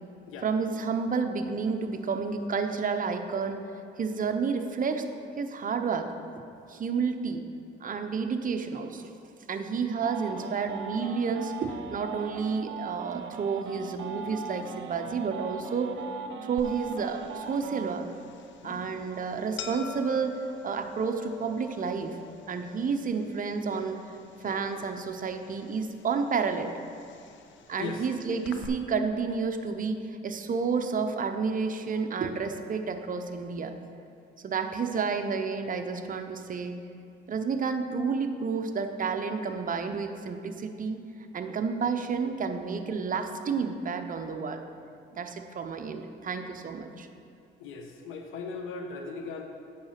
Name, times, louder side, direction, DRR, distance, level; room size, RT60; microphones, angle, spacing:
voice 1, 0.4-3.6 4.0-5.0 5.4-6.1 6.7-7.4 7.8-9.0 9.5-16.0 16.5-18.1 18.6-20.4 20.6-22.2 22.5-24.0 24.4-26.7 27.7-30.0 30.2-33.7 34.4-36.8 37.3-41.0 41.3-44.6 45.1-47.1, right 5 dB, 45° right, 6 dB, 0.7 m, -30 dB
sound 1, 10.0-17.9, right 6 dB, 75° right, 0.6 m, -39 dB
sound 2, 16.6-28.7, left 7 dB, 70° left, 0.7 m, -47 dB
voice 2, 47.6-49.4, left 4 dB, 90° left, 4 dB, 1.1 m, -37 dB
8.6 x 5.7 x 5.9 m, 2.4 s
cardioid pair, 90°, 20 cm